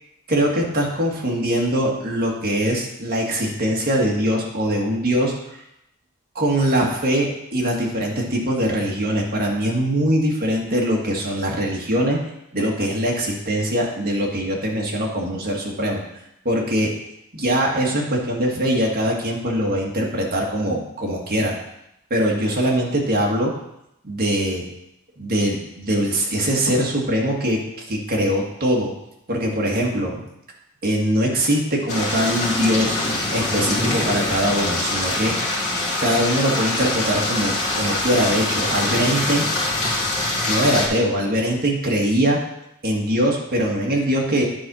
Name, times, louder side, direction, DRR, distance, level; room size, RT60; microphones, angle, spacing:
voice 1, 0.3-5.3 6.4-12.2 12.5-16.0 16.5-16.9 17.3-21.6 22.1-23.5 24.0-24.6 25.2-28.9 29.3-30.2 30.8-33.0 33.3-35.4 36.0-39.5 40.5-42.4 42.8-44.5, equal, 45° right, -1 dB, 1.8 m, -22 dB
sound 1, 31.9-40.9, left 2 dB, 35° left, 2.5 m, -24 dB
9.9 x 4.3 x 6.2 m, 0.83 s
head